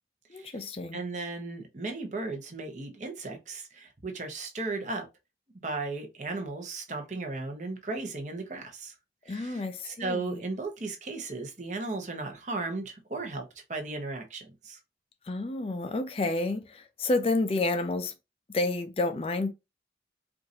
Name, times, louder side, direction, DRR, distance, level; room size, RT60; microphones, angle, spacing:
voice 1, 0.3-1.0 9.3-10.4 15.3-18.1 18.5-19.5, left 2 dB, 35° left, 0.4 m, -30 dB
voice 2, 0.9-5.1 5.5-8.9 9.2-14.8, right 3 dB, 40° right, 0.9 m, -36 dB
4.7 x 2.5 x 2.7 m
head